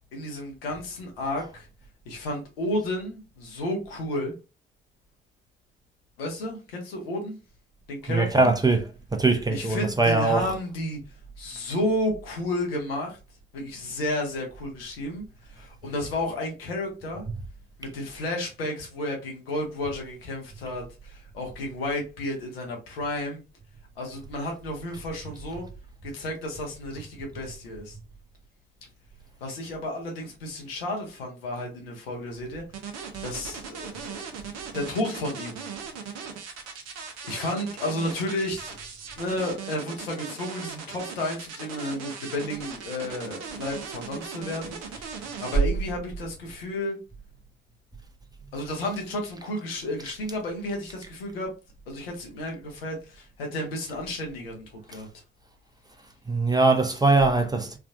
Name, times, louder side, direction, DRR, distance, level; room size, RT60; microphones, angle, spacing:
voice 1, 0.1-1.7 2.1-4.3 6.2-7.4 7.9-8.5 9.5-11.0 11.4-13.2 13.5-17.3 17.8-23.4 24.0-25.7 26.0-28.0 29.4-32.6 33.2-34.3 34.7-35.6 37.2-38.8 39.2-47.0 48.5-51.5 51.9-55.1, left 1 dB, 85° left, 0.8 m, -32 dB
voice 2, 8.1-8.8 9.1-10.5 17.3-17.4 56.3-57.8, right 3 dB, 15° right, 0.7 m, -21 dB
sound 1, 32.7-45.6, right 6 dB, 60° right, 0.8 m, -38 dB
3.4 x 2.4 x 2.4 m
figure-of-eight pair, 40°, 29 cm